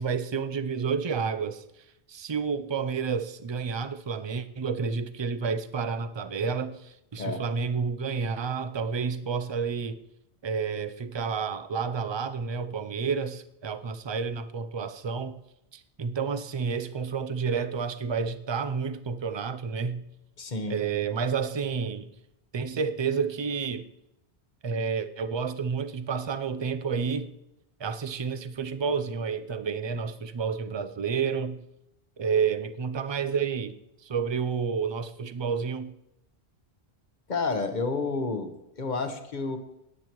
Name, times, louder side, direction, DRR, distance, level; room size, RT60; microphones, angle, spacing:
voice 1, 0.0-1.6 2.1-10.0 10.4-15.4 15.7-20.0 20.7-22.1 22.5-23.9 24.6-27.3 27.8-31.6 32.2-35.9, right 5 dB, 35° right, 11 dB, 0.4 m, -30 dB
voice 2, 20.4-20.8 37.3-39.6, left 3 dB, 45° left, 7 dB, 1.2 m, -30 dB
16.5 x 10.0 x 3.0 m, 0.84 s
omnidirectional pair, 1.1 m